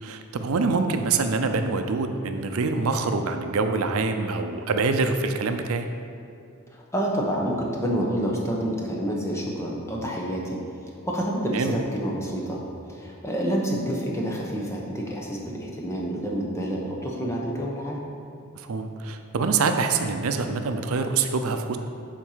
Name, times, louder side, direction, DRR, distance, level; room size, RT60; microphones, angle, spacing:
voice 1, 0.0-5.9 11.5-11.8 18.6-21.8, right 4 dB, 85° right, 6 dB, 0.5 m, -25 dB
voice 2, 6.9-10.6 11.0-12.6 12.9-18.0, equal, 15° left, -2 dB, 0.9 m, -28 dB
7.6 x 4.3 x 5.7 m, 2.6 s
head